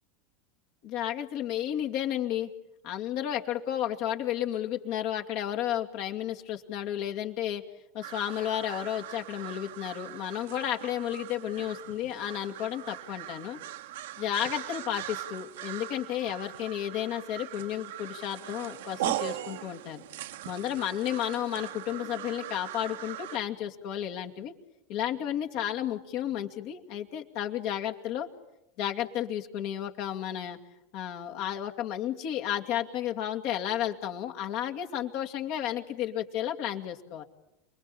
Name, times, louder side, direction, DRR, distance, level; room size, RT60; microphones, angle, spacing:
voice 1, 0.8-2.5 2.8-7.6 7.9-13.6 14.2-20.0 20.5-24.5 24.9-28.3 28.8-30.6 30.9-37.2, left 11 dB, 55° left, 3 dB, 2.4 m, -32 dB
sound 1, 8.0-23.4, right 13 dB, 70° right, 1.2 m, -40 dB
29.0 x 21.5 x 8.6 m, 0.88 s
hypercardioid pair, 85°, 0 cm